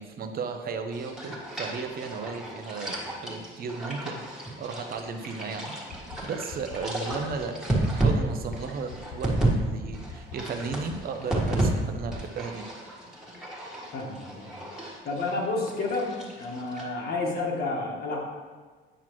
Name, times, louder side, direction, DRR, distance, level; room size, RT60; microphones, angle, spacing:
voice 1, 0.0-5.8 6.2-12.6, right 5 dB, 45° right, 7 dB, 0.7 m, -35 dB
sound 1, 0.9-9.5 9.8-11.7 12.0-16.8, right 2 dB, 5° right, 1.6 m, -32 dB
sound 2, 5.9-6.2 6.5-6.8 7.1-7.4 7.7-8.0 8.3-8.6 8.9-9.2 9.5-9.8 10.1-10.4 10.7-11.0 11.3-11.6 11.9-12.2, left 8 dB, 70° left, 0.6 m, -42 dB
voice 2, 13.9-14.6 15.0-16.1 16.4-18.2, left 3 dB, 50° left, -2 dB, 1.4 m, -30 dB
9.0 x 6.0 x 3.1 m, 1.5 s
cardioid pair, 125°, 20 cm